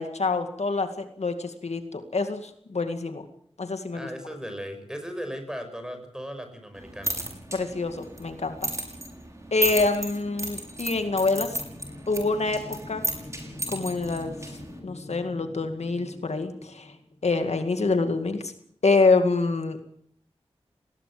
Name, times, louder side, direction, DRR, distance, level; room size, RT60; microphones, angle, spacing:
voice 1, 0.0-3.3 3.6-4.1 7.5-8.7 9.5-11.6 12.1-13.0 13.7-14.4 14.8-16.9 17.2-18.5 18.8-19.8, left 3 dB, 90° left, 7 dB, 2.2 m, -26 dB
voice 2, 3.9-7.1, equal, 5° right, 7 dB, 6.4 m, -37 dB
sound 1, 6.8-14.8, right 2 dB, 30° right, 6.1 m, -34 dB
sound 2, 10.7-17.7, left 1 dB, 35° left, 3.4 m, -45 dB
20.0 x 19.0 x 7.8 m, 0.64 s
wide cardioid pair, 65°, 11 cm